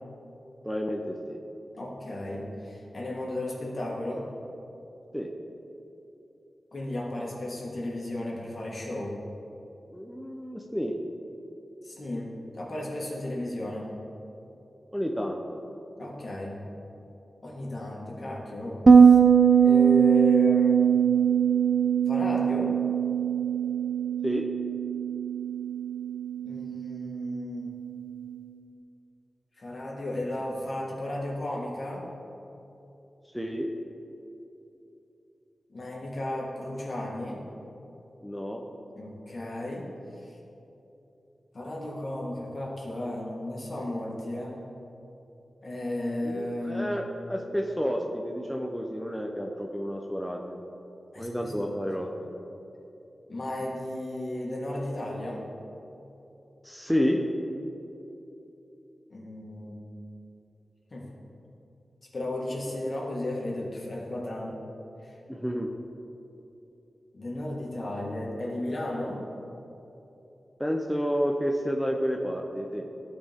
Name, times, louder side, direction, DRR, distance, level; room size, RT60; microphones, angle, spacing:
voice 1, 0.6-1.4 5.1-5.3 9.9-11.0 14.9-15.6 24.2-24.5 33.3-33.7 38.2-38.6 46.2-50.6 51.2-52.1 56.6-57.2 65.3-65.7 70.6-72.9, equal, ahead, 1 dB, 0.6 m, -30 dB
voice 2, 1.7-4.3 6.7-9.2 11.8-13.9 16.0-16.6 17.4-19.2 19.6-20.9 22.1-22.8 26.4-27.7 29.6-32.1 35.7-37.4 38.9-39.9 40.2-40.4 41.5-44.6 45.6-47.0 51.1-51.8 53.3-55.4 59.1-59.8 60.9-61.1 62.1-64.6 65.0-65.2 67.1-69.3, left 1 dB, 55° left, -4 dB, 1.8 m, -34 dB
Bass guitar, 18.9-28.2, right 7 dB, 50° right, 0.5 m, -21 dB
13.5 x 4.5 x 3.6 m, 3.0 s
cardioid pair, 65°, 0 cm